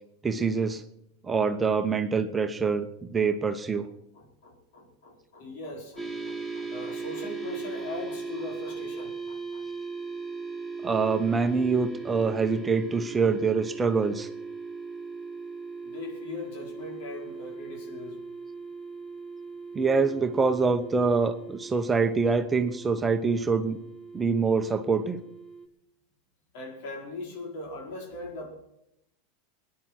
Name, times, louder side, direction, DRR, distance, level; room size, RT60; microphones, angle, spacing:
voice 1, 0.2-0.8 1.2-3.9 10.8-14.3 19.7-23.8 24.1-25.2, right 4 dB, 20° right, 8 dB, 1.1 m, -25 dB
voice 2, 4.1-9.7 15.8-18.3 26.5-28.5, left 2 dB, 60° left, 0 dB, 4.8 m, -40 dB
sound 1, 6.0-25.7, right 4 dB, 15° left, 3.4 m, -39 dB
20.5 x 10.5 x 6.0 m, 0.84 s
hypercardioid pair, 95°, 0 cm